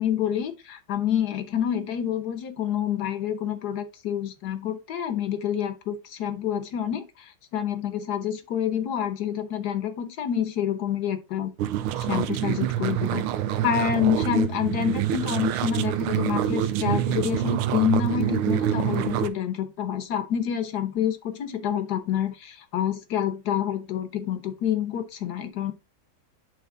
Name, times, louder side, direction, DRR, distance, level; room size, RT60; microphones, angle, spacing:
voice 1, 0.0-11.5 12.0-13.3 13.6-25.7, left 9 dB, 60° left, 1.3 m, -27 dB
sound 1, 11.6-19.3, right 11 dB, 90° right, 1.5 m, -26 dB
9.4 x 3.4 x 3.8 m
omnidirectional pair, 2.3 m